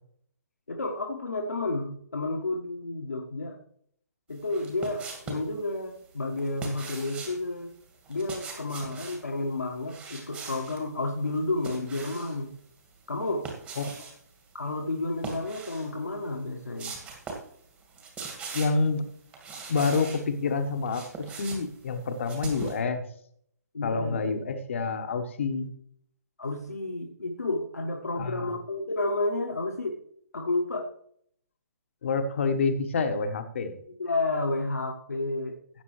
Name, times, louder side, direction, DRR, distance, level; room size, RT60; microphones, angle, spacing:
voice 1, 0.7-3.6 4.3-7.7 8.1-12.5 13.1-13.5 14.5-17.0 23.7-24.2 26.4-30.0 30.3-30.9 34.0-35.5, left 2 dB, 70° left, 1 dB, 1.5 m, -31 dB
sound 1, 4.4-5.5 6.4-7.4 8.1-9.2 9.9-10.8 11.2-12.4 13.2-14.2 15.1-15.9 16.3-16.4 16.8-17.5 17.8-18.9 19.3-20.2 20.7-22.8, right 4 dB, 15° right, 2.1 m, -41 dB
voice 2, 18.5-19.0 19.7-21.0 21.4-23.0 23.8-25.7 28.2-28.6 32.0-33.8, left 4 dB, 45° left, 8 dB, 1.4 m, -28 dB
16.0 x 8.1 x 3.2 m, 0.65 s
figure-of-eight pair, 130°, 9 cm